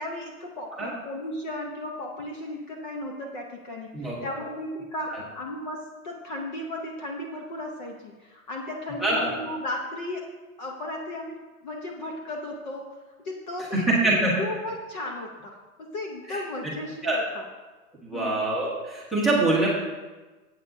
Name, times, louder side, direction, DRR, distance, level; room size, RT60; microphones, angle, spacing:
voice 1, 0.0-10.3 10.6-13.0 13.2-17.4 18.1-18.3, left 1 dB, 30° left, 1 dB, 0.8 m, -35 dB
voice 2, 9.0-9.3 13.7-14.3 16.3-16.4 17.0-17.2 18.0-19.7, right 2 dB, ahead, -6 dB, 1.0 m, -24 dB
14.5 x 8.1 x 2.6 m, 1.2 s
hypercardioid pair, 160°, 44 cm